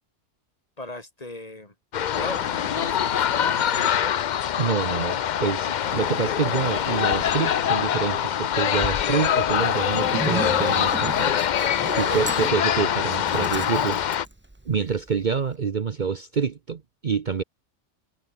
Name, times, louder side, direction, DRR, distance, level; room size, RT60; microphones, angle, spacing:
voice 1, 0.8-1.7 2.0-4.2, left 2 dB, 30° left, 2.6 m, -37 dB
sound 1, 1.9-14.2, left 9 dB, 55° left, 0.5 m, -24 dB
sound 2, 2.1-4.0 5.8-7.7 9.5-11.4, left 4 dB, 90° left, 3.0 m, -39 dB
voice 2, 4.6-11.3 11.9-14.0 14.7-17.4, right 6 dB, 45° right, 0.9 m, -27 dB
Zipper (clothing), 9.8-15.1, right 2 dB, 10° right, 0.9 m, -34 dB
omnidirectional pair, 1.2 m